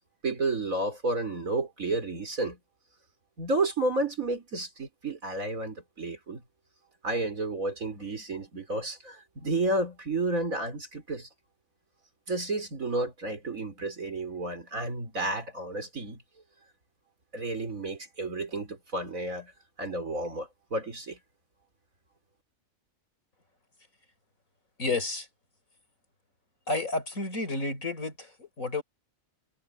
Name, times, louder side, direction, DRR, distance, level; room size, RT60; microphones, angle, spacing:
voice 1, 0.2-2.6 3.4-6.4 7.0-11.3 12.3-16.2 17.3-19.5 19.8-21.2, right 2 dB, 75° right, 4.6 m, -31 dB
voice 2, 24.8-25.3 26.7-28.8, left 2 dB, 75° left, 5.8 m, -31 dB
omnidirectional pair, 1.4 m